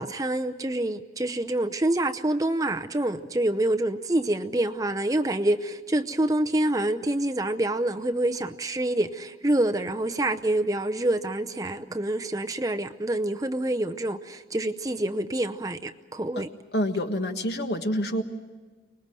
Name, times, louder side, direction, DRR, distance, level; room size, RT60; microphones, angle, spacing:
voice 1, 0.0-16.5, right 1 dB, 20° right, 0.7 m, -27 dB
voice 2, 16.7-18.2, equal, 65° left, 1.6 m, -27 dB
24.5 x 20.0 x 7.6 m
head